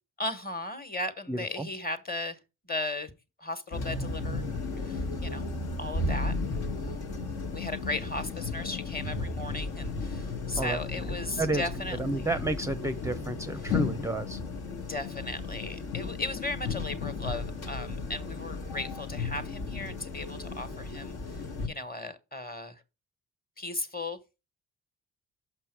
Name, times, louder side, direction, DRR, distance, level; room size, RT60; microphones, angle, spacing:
voice 1, 0.2-2.4 2.7-3.1 3.4-5.5 5.8-7.2 7.5-12.3 13.6-13.7 14.9-22.8 23.6-24.2, left 2 dB, 25° left, 1.4 m, -36 dB
voice 2, 1.3-1.7 10.5-11.1 11.4-11.7 12.0-14.4, right 2 dB, 10° right, 0.5 m, -31 dB
sound 1, 3.7-21.7, left 3 dB, 70° left, 1.4 m, -34 dB
6.1 x 5.5 x 4.6 m
supercardioid pair, 60°, 39 cm